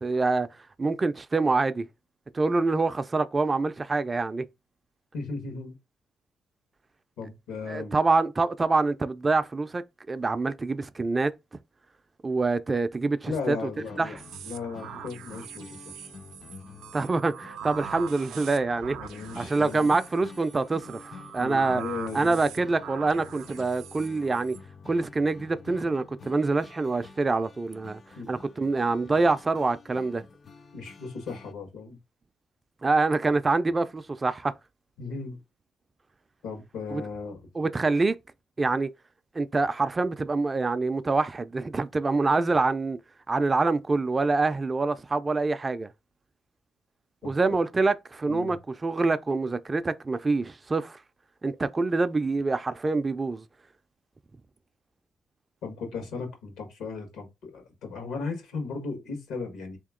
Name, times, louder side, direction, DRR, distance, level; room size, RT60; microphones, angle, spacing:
voice 1, 0.0-0.5 0.8-1.9 2.3-4.5 7.7-11.3 12.2-13.6 14.0-14.1 16.9-19.0 19.4-21.8 22.1-24.6 24.9-28.0 28.3-30.2 32.8-34.5 36.9-37.0 37.6-38.2 38.6-38.9 39.3-43.0 43.3-45.9 47.2-51.0 51.4-53.4, right 3 dB, 25° right, 0.3 m, -26 dB
voice 2, 5.1-5.8 7.2-7.9 13.3-14.2 14.4-16.1 18.9-19.9 21.4-22.4 28.2-28.4 30.7-32.0 35.0-35.4 36.4-37.5 47.2-47.3 48.3-48.6 55.6-59.8, left 4 dB, 80° left, 1.3 m, -36 dB
sound 1, 13.7-31.5, left 5 dB, 45° left, 0.4 m, -49 dB
sound 2, 14.2-24.6, right 9 dB, 90° right, 0.4 m, -43 dB
3.5 x 2.9 x 3.6 m
cardioid pair, 90°, 0 cm